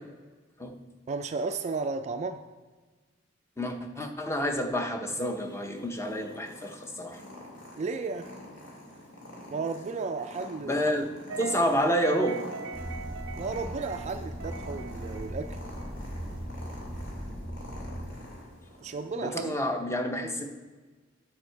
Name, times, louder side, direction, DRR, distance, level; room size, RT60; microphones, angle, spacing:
voice 1, 1.1-2.4 7.8-8.3 9.5-10.8 13.4-15.5 18.8-19.5, right 4 dB, 35° right, 8 dB, 0.3 m, -33 dB
voice 2, 3.6-7.2 10.6-11.1 11.4-12.4 19.2-20.5, equal, 15° left, 5 dB, 0.7 m, -29 dB
Purr, 5.2-19.1, left 1 dB, 70° left, 2.4 m, -47 dB
sound 1, 11.3-16.3, right 5 dB, 80° right, 0.6 m, -41 dB
sound 2, 12.7-18.1, equal, 45° left, 2.4 m, -39 dB
9.7 x 6.3 x 4.6 m, 1.4 s
head